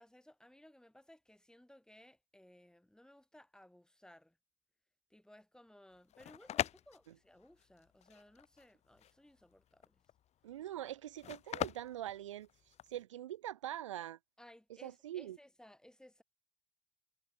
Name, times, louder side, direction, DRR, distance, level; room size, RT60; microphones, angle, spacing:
voice 1, 0.0-4.4 5.1-10.0 14.4-16.2, left 1 dB, 5° left, 7.6 m, -61 dB
sound 1, 5.9-13.0, left 11 dB, 45° left, 1.3 m, -42 dB
voice 2, 10.4-12.5 12.9-14.2 14.8-15.4, right 12 dB, 75° right, 0.9 m, -43 dB
figure-of-eight pair, 55°, 16 cm